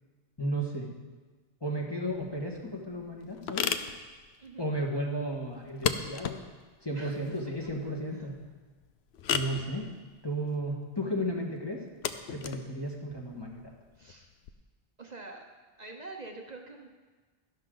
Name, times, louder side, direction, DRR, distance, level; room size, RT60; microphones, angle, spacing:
voice 1, 0.4-0.9 1.6-3.7 4.6-6.4 6.8-8.4 9.3-9.9 10.2-11.8 12.3-13.6, right 1 dB, 25° left, -1 dB, 1.5 m, -34 dB
sound 1, 2.1-14.5, left 7 dB, 85° left, 0.9 m, -37 dB
voice 2, 4.4-4.7 6.9-7.2 7.6-7.7 8.1-8.3 14.0-14.3 15.0-15.4 15.8-16.9, right 3 dB, 45° right, 1 dB, 1.0 m, -45 dB
12.5 x 11.5 x 3.9 m, 1.4 s
omnidirectional pair, 1.1 m